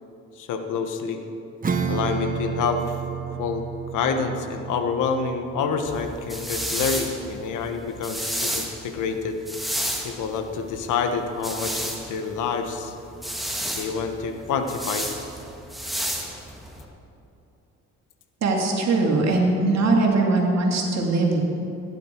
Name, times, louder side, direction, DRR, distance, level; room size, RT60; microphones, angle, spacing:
voice 1, 0.4-1.2 1.9-3.0 3.4-3.6 3.9-9.4 10.0-12.9 13.7-15.1, left 5 dB, 85° left, 6 dB, 1.2 m, -27 dB
Acoustic guitar / Strum, 1.6-7.6, right 6 dB, 30° right, 0.9 m, -32 dB
sound 1, 5.8-16.8, equal, ahead, 1.9 m, -32 dB
voice 2, 18.4-21.4, right 3 dB, 60° right, 0 dB, 2.6 m, -21 dB
16.5 x 10.5 x 4.6 m, 2.8 s
cardioid pair, 90°, 30 cm